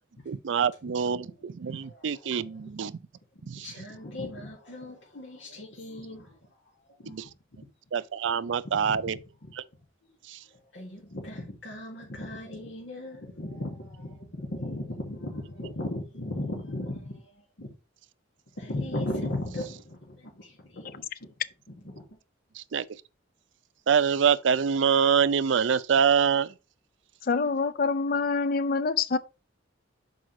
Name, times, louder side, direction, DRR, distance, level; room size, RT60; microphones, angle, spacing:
voice 1, 0.3-3.0 3.4-3.7 7.1-7.3 7.9-9.2 9.6-9.7 10.3-10.4 22.6-22.8 23.9-26.5, right 7 dB, 70° right, 0.4 m, -25 dB
voice 2, 1.7-2.6 3.5-6.4 7.0-7.2 7.5-7.7 8.8-9.5 10.5-17.7 18.5-21.3 21.8-22.2, left 1 dB, 70° left, 1.6 m, -37 dB
voice 3, 27.3-29.2, left 4 dB, 45° left, 0.4 m, -26 dB
6.1 x 4.9 x 3.8 m
head